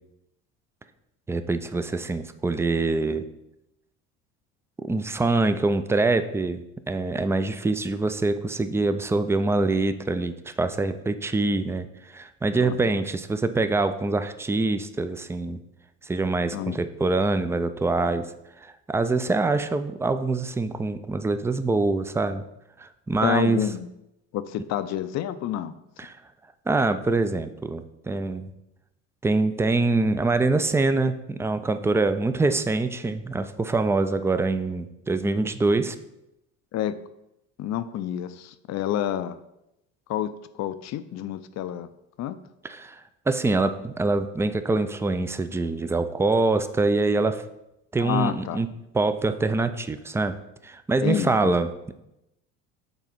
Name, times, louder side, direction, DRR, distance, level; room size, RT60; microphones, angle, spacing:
voice 1, 1.3-3.3 4.8-11.9 12.1-15.6 16.0-18.3 18.6-22.5 22.8-23.7 26.0-26.2 26.7-28.5 29.2-36.0 42.6-47.4 47.9-48.7 48.9-51.9, right 3 dB, 10° right, 11 dB, 0.3 m, -25 dB
voice 2, 23.2-23.9 24.3-25.7 36.7-37.0 37.6-39.4 40.1-40.3 40.6-41.9 42.2-42.4 48.0-48.6 51.0-51.5, left 11 dB, 50° left, 13 dB, 0.5 m, -29 dB
6.0 x 4.0 x 5.1 m, 0.87 s
supercardioid pair, 80°, 34 cm